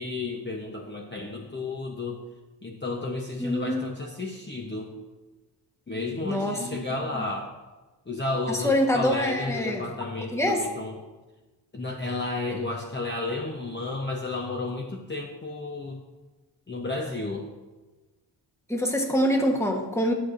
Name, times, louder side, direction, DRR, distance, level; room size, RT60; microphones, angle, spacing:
voice 1, 0.0-2.2 2.6-4.9 5.9-7.5 8.1-11.0 11.7-16.0 16.7-17.5, left 3 dB, 25° left, -1 dB, 0.8 m, -32 dB
voice 2, 3.4-3.8 6.2-6.6 8.5-9.8 10.3-10.6 18.7-20.1, equal, 5° left, 1 dB, 1.1 m, -25 dB
12.5 x 8.0 x 2.6 m, 1.2 s
wide cardioid pair, 110°, 43 cm